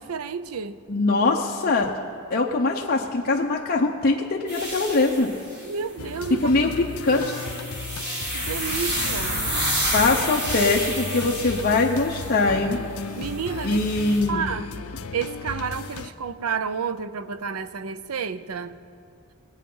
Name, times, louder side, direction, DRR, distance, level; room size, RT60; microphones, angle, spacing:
voice 1, 0.0-0.8 5.6-6.5 8.3-9.4 13.1-13.8 14.3-14.7 15.1-18.8, right 6 dB, 85° right, 13 dB, 0.6 m, -30 dB
voice 2, 0.9-1.9 2.3-5.3 6.4-7.3 9.9-12.8 13.6-14.4, left 3 dB, 45° left, -1 dB, 0.8 m, -22 dB
sound 1, 4.5-5.7 7.0-12.4 13.2-14.2, equal, 50° right, 4.2 m, -30 dB
sound 2, 6.0-16.1, left 4 dB, 80° left, 0.6 m, -35 dB
21.0 x 8.5 x 5.5 m, 2.5 s
head